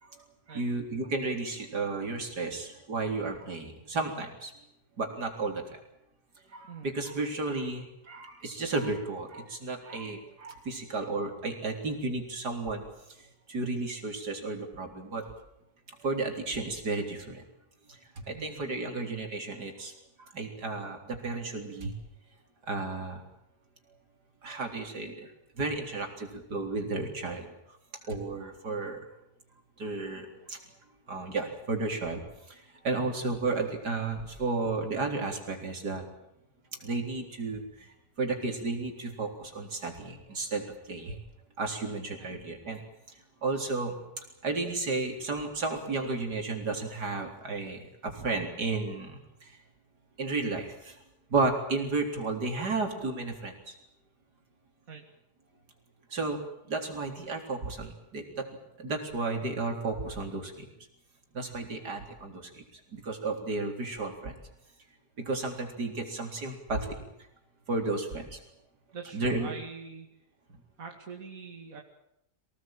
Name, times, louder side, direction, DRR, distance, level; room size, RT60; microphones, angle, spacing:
voice 1, 0.0-4.5 5.0-5.8 6.5-12.8 13.2-15.2 16.0-17.4 17.9-19.9 20.3-21.9 22.7-23.2 24.4-25.3 25.6-27.5 28.0-29.0 29.8-30.6 31.1-32.2 32.5-36.0 36.8-41.2 41.6-42.8 43.4-43.9 44.4-49.5 50.2-51.0 51.3-53.7 56.1-56.4 56.7-58.5 58.8-60.7 61.3-62.6 62.9-64.4 65.2-67.0 67.7-68.4 69.1-69.5, right 3 dB, 80° right, 4 dB, 4.4 m, -33 dB
voice 2, 18.3-18.7 32.9-33.2 42.2-42.3 54.9-55.1 68.9-70.1 70.8-71.8, right 5 dB, 55° right, 2 dB, 2.8 m, -44 dB
24.5 x 18.5 x 9.0 m, 0.81 s
omnidirectional pair, 1.7 m